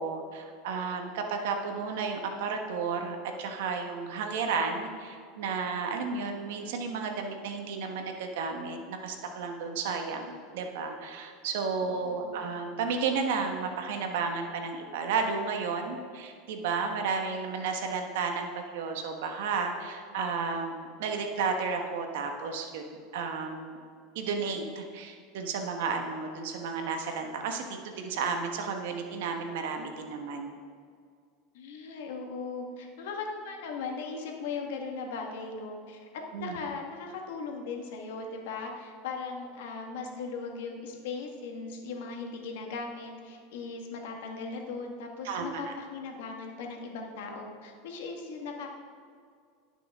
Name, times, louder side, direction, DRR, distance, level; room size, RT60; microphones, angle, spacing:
voice 1, 0.0-22.8 23.1-23.8 24.1-30.5 36.3-36.5 45.2-45.6, right 5 dB, 80° right, 4 dB, 1.2 m, -32 dB
voice 2, 11.9-12.5 31.5-48.7, left 4 dB, 80° left, 2 dB, 1.5 m, -38 dB
16.5 x 6.1 x 3.6 m, 2.2 s
supercardioid pair, 130°, 0 cm